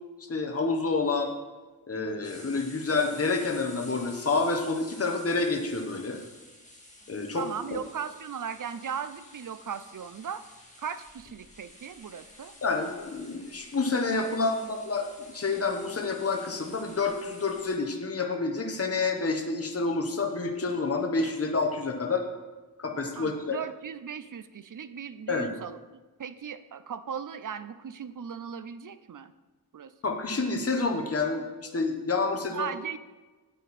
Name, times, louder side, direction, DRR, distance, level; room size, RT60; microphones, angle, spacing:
voice 1, 0.3-1.3 1.9-6.2 7.1-7.8 12.6-22.2 22.8-23.6 25.3-25.5 30.0-32.7, left 3 dB, 40° left, 3 dB, 1.1 m, -28 dB
sound 1, 2.2-17.8, left 1 dB, 20° left, 2.0 m, -51 dB
voice 2, 7.3-10.4 10.8-12.5 23.2-25.8 26.2-29.3 29.7-29.9 32.5-33.0, right 7 dB, 55° right, 13 dB, 0.6 m, -37 dB
9.0 x 8.6 x 4.2 m, 1.2 s
wide cardioid pair, 75°, 37 cm